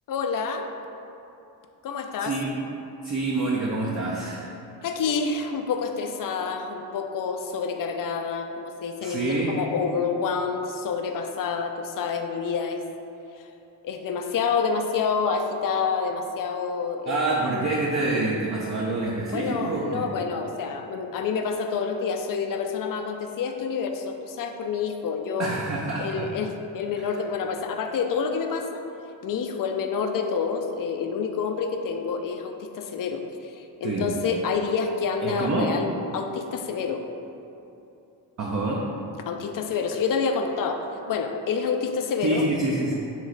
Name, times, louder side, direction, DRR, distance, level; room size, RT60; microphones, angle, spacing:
voice 1, 0.1-0.7 1.8-2.3 4.8-12.8 13.4-13.5 13.8-17.3 19.3-25.5 26.0-28.8 29.2-37.0 39.3-42.4, left 5 dB, 45° left, 5 dB, 0.5 m, -28 dB
voice 2, 2.2-2.7 3.0-4.6 9.0-9.6 17.1-20.1 25.4-26.3 27.0-27.1 33.8-34.1 35.2-35.7 38.4-38.8 42.2-42.9, right 2 dB, 35° right, -3 dB, 0.5 m, -27 dB
3.1 x 3.1 x 3.7 m, 2.8 s
supercardioid pair, 50°, 48 cm